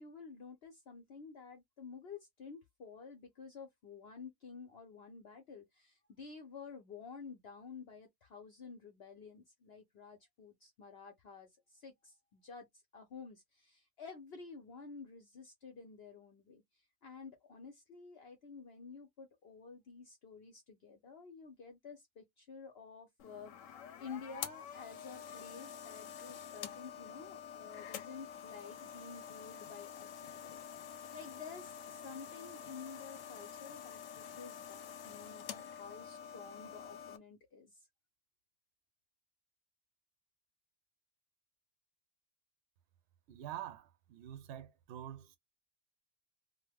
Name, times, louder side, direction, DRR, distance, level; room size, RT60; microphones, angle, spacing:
voice 1, 0.0-12.7 12.9-16.6 17.0-37.8, left 5 dB, 60° left, 0.9 m, -51 dB
sound 1, 23.2-37.2, left 8 dB, 90° left, 1.0 m, -48 dB
voice 2, 43.3-45.4, right 11 dB, 65° right, 0.8 m, -46 dB
2.9 x 2.1 x 3.4 m
omnidirectional pair, 1.3 m